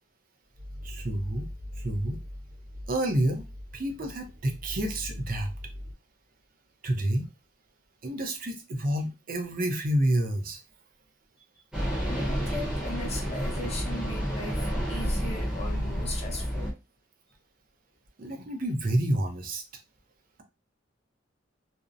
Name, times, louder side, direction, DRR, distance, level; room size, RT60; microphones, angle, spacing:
sound 1, 0.6-5.9, left 1 dB, 75° right, 0.8 m, -41 dB
voice 1, 0.8-1.4 1.8-2.2 2.9-3.5 3.7-5.5 6.8-7.3 8.0-10.6 18.2-19.6, right 1 dB, 45° right, 5 dB, 0.5 m, -29 dB
sound 2, 11.7-16.7, equal, 5° right, 0.8 m, -30 dB
voice 2, 11.9-14.6 14.9-16.7, left 2 dB, 35° left, 1 dB, 0.7 m, -38 dB
2.6 x 2.0 x 2.4 m, 0.26 s
head